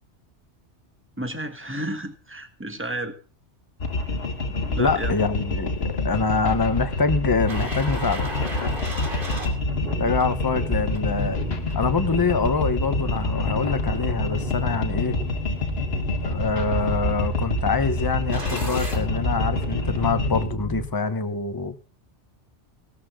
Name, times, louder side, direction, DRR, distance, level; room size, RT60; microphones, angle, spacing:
voice 1, 1.2-3.1 4.7-5.1, right 1 dB, 10° right, 7 dB, 1.5 m, -32 dB
sound 1, 3.8-20.5, left 3 dB, 60° left, 1.8 m, -27 dB
voice 2, 4.8-8.3 10.0-11.4 11.7-15.2 16.2-21.8, left 4 dB, 20° left, 10 dB, 0.9 m, -25 dB
sound 2, 7.5-20.9, right 1 dB, 50° right, 3.0 m, -32 dB
16.5 x 13.0 x 3.7 m, 0.36 s
omnidirectional pair, 1.2 m